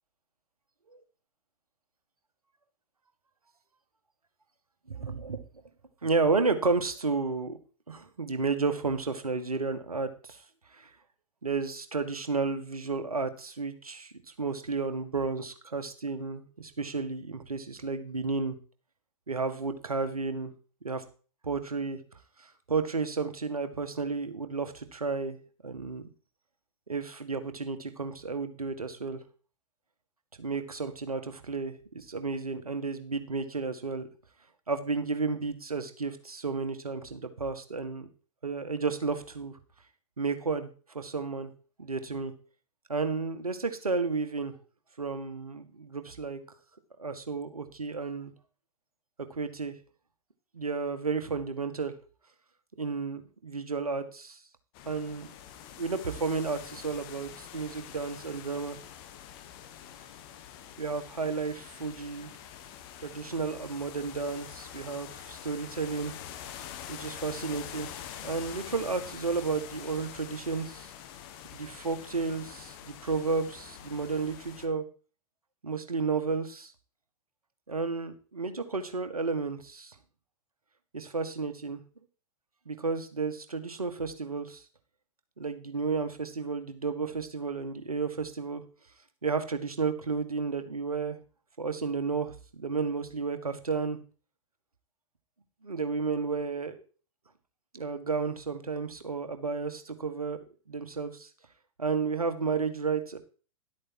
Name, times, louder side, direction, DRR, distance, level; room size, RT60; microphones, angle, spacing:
voice 1, 4.9-5.4 6.0-7.6 7.9-10.4 10.7-10.9 11.4-14.1 14.4-18.6 19.3-20.5 20.8-21.0 21.4-22.0 22.4-25.4 25.6-26.0 26.9-29.2 30.4-34.1 34.7-38.1 38.4-39.6 40.2-40.7 40.9-41.5 41.8-42.3 42.9-44.5 45.0-46.4 47.0-48.3 49.3-49.7 50.5-51.9 52.8-54.4 54.8-55.3 55.8-58.8 60.8-62.3 63.0-66.1 66.9-67.9 68.2-70.9 71.5-74.8 75.6-76.7 77.7-79.9 80.9-81.8 82.6-84.6 85.4-88.6 89.2-91.2 91.6-94.0 95.6-96.8 97.7-100.4 100.7-101.3 101.8-103.2, right 4 dB, 80° right, 9 dB, 1.8 m, -32 dB
sound 1, 54.7-74.7, left 10 dB, 40° left, 1.5 m, -45 dB
12.0 x 8.5 x 4.6 m, 0.38 s
figure-of-eight pair, 105°, 19 cm